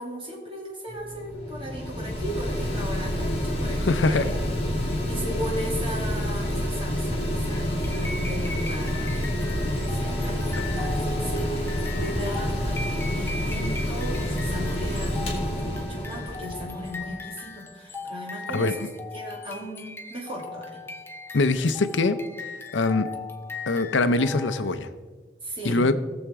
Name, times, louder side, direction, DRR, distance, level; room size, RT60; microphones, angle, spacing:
voice 1, 0.0-4.4 5.1-18.9 19.1-20.8 25.4-25.8, equal, 30° right, -2 dB, 2.6 m, -36 dB
Mechanical fan, 0.9-17.2, equal, 30° left, 2.1 m, -28 dB
voice 2, 3.8-4.3 10.6-10.7 18.5-18.7 21.3-22.2 22.7-23.1 23.7-24.9 25.6-25.9, left 3 dB, 85° left, 11 dB, 0.6 m, -23 dB
sound 1, 7.8-24.9, left 3 dB, 15° left, 0.5 m, -39 dB
18.5 x 7.1 x 3.6 m, 1.5 s
head